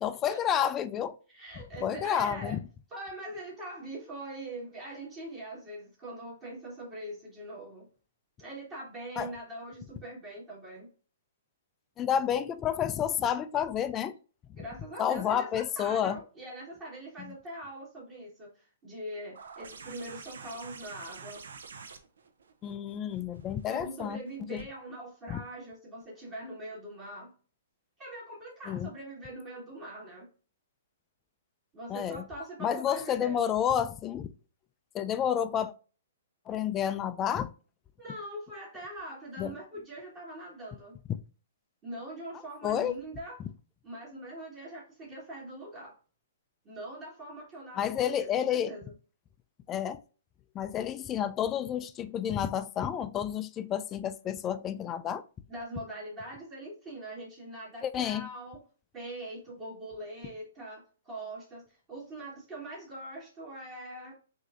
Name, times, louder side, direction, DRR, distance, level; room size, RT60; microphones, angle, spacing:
voice 1, 0.0-1.2 1.8-2.6 9.2-9.3 12.0-14.2 15.0-16.2 17.2-17.3 22.6-24.2 24.5-24.6 25.3-25.4 28.7-28.9 31.9-32.2 32.6-34.3 34.9-35.7 36.5-37.5 39.4-39.5 42.6-43.0 47.8-48.7 49.7-50.0 50.5-55.2 57.8-58.3, left 9 dB, 25° left, 0.4 m, -30 dB
voice 2, 1.3-2.6 2.9-7.9 8.4-10.9 14.5-21.4 23.7-27.3 28.0-30.3 31.7-33.4 38.0-41.0 41.8-43.4 43.8-46.0 46.6-48.9 55.5-58.6 58.9-64.1, right 1 dB, 25° right, 1.7 m, -42 dB
sound 1, 19.3-24.6 26.0-26.1, right 5 dB, 75° right, 0.6 m, -48 dB
6.1 x 2.7 x 2.5 m
hypercardioid pair, 130°, 0 cm